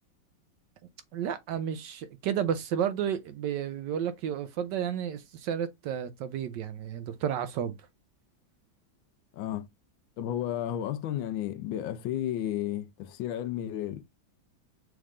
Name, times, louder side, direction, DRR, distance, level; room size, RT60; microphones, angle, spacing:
voice 1, 1.1-7.8, right 9 dB, 75° right, 1.1 m, -32 dB
voice 2, 9.3-9.7 10.2-14.0, left 11 dB, 80° left, 1.3 m, -32 dB
6.4 x 3.5 x 2.4 m
omnidirectional pair, 2.1 m